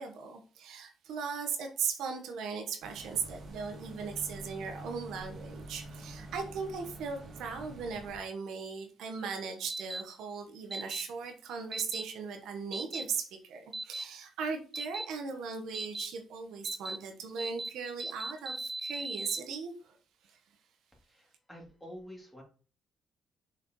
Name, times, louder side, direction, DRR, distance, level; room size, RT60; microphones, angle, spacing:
voice 1, 0.0-19.9 20.3-20.4, right 5 dB, 80° right, 1.1 m, -38 dB
sound 1, 2.8-8.2, right 1 dB, 55° right, 1.5 m, -46 dB
sound 2, 9.7-10.0 10.7-11.0 11.7-12.0 12.7-13.0 13.7-14.0 14.7-15.0 15.7-16.1 16.6-17.0 17.4-17.7 18.0-19.4, right 2 dB, 20° right, 0.4 m, -37 dB
voice 2, 21.0-22.4, equal, 5° left, 2.6 m, -48 dB
6.6 x 4.9 x 3.0 m
cardioid pair, 90°, 0 cm